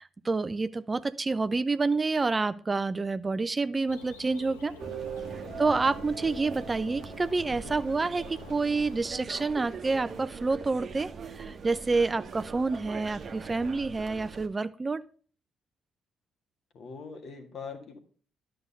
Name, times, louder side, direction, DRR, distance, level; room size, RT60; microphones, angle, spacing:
voice 1, 0.0-4.7 5.6-15.0, right 3 dB, 30° right, 14 dB, 0.6 m, -28 dB
Bird, 3.9-9.0, left 5 dB, 85° left, 1.1 m, -48 dB
sound 1, 4.8-14.5, right 5 dB, 50° right, 1.1 m, -41 dB
voice 2, 16.7-18.0, left 5 dB, 55° left, 6 dB, 1.8 m, -42 dB
11.0 x 6.6 x 5.5 m, 0.42 s
hypercardioid pair, 45°, 0 cm